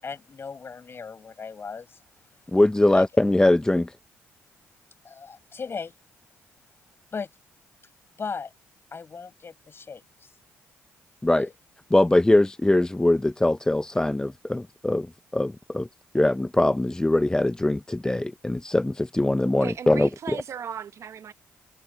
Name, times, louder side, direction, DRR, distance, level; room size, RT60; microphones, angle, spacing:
voice 1, 0.0-2.0 2.9-3.0 5.0-5.9 7.1-7.3 8.2-8.5 8.9-10.3 11.4-11.5, left 5 dB, 45° left, 6.2 m, -37 dB
voice 2, 2.5-3.9 11.2-11.5 11.9-15.1 15.3-15.9 16.1-20.1, left 1 dB, 10° left, 0.7 m, -22 dB
voice 3, 19.6-21.3, right 8 dB, 55° right, 1.1 m, -36 dB
hypercardioid pair, 50°, 6 cm